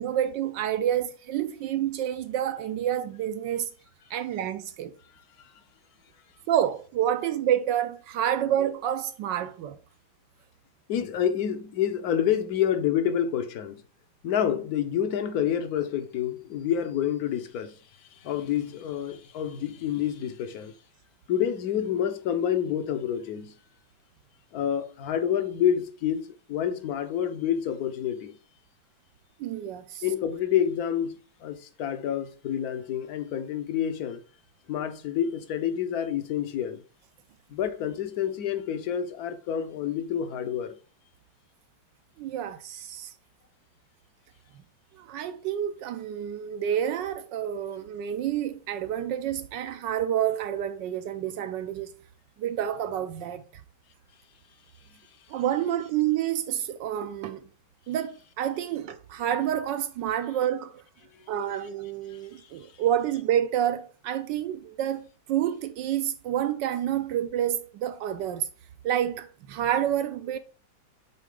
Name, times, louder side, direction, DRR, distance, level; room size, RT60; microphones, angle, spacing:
voice 1, 0.0-3.7 4.1-4.9 6.5-9.8 29.4-30.0 42.2-43.1 44.9-51.9 52.4-53.6 55.3-57.4 57.9-60.8 61.3-68.5 68.8-70.4, right 10 dB, 75° right, 1.1 m, -28 dB
voice 2, 10.9-13.8 14.2-20.8 21.3-23.6 24.5-28.4 30.0-31.1 31.4-34.2 34.7-36.8 37.5-40.8 54.9-55.0 62.1-62.8, left 9 dB, 60° left, 1.0 m, -28 dB
8.4 x 3.8 x 3.7 m
omnidirectional pair, 2.2 m